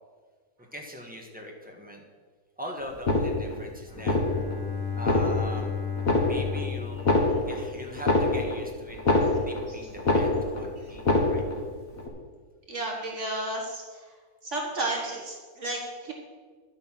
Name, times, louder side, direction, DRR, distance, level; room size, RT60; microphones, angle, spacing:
voice 1, 0.7-2.0 2.6-4.2 4.9-5.7 6.2-11.4, left 1 dB, 5° right, 0 dB, 1.4 m, -41 dB
sound 1, 2.9-3.6 4.0-4.6 4.9-5.7 6.0-6.7 6.9-9.7 10.0-10.7 10.9-11.6 12.0-12.1, left 2 dB, 65° left, 2.0 m, -24 dB
Bowed string instrument, 3.9-8.2, left 6 dB, 20° left, 0.9 m, -34 dB
voice 2, 12.7-14.0 14.4-16.1, right 2 dB, 55° right, -1 dB, 2.0 m, -32 dB
11.0 x 8.0 x 6.0 m, 1.5 s
omnidirectional pair, 1.6 m